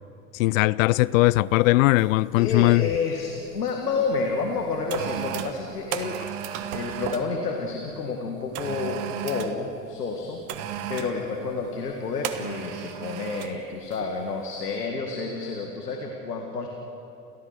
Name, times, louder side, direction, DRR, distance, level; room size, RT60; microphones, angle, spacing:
voice 1, 0.3-2.9, left 19 dB, 60° left, 0.5 m, -19 dB
sound 1, 1.1-1.3 2.0-2.3 2.5-3.7 4.4-7.3 8.5-9.6 10.5-11.2 12.2-13.6 13.9-14.1, right 10 dB, 55° right, 1.5 m, -34 dB
voice 2, 2.4-6.2 6.7-10.4 10.9-16.7, left 4 dB, 85° left, 2.0 m, -30 dB
30.0 x 13.5 x 6.6 m
hypercardioid pair, 85°, 46 cm